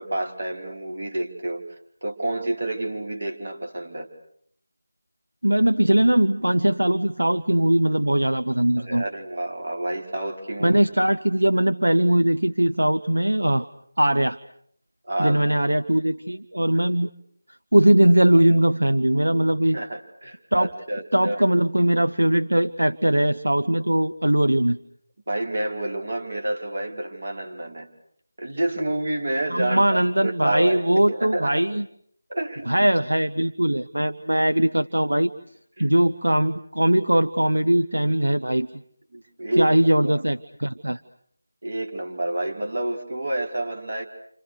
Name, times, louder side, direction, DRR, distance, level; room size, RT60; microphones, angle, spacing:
voice 1, 0.0-4.1 8.8-10.8 15.0-15.4 16.7-16.8 19.7-21.4 25.3-27.9 28.4-31.5 32.3-32.9 35.8-35.9 39.1-40.2 41.6-44.1, right 1 dB, 50° right, 2 dB, 5.0 m, -29 dB
voice 2, 5.4-9.0 10.6-13.7 14.0-14.4 15.2-17.1 17.7-19.8 20.5-20.7 21.1-24.8 29.5-31.9 32.7-35.3 35.8-38.7 39.6-41.0, right 1 dB, 75° right, 9 dB, 1.1 m, -20 dB
30.0 x 27.5 x 6.7 m, 0.66 s
figure-of-eight pair, 165°, 0 cm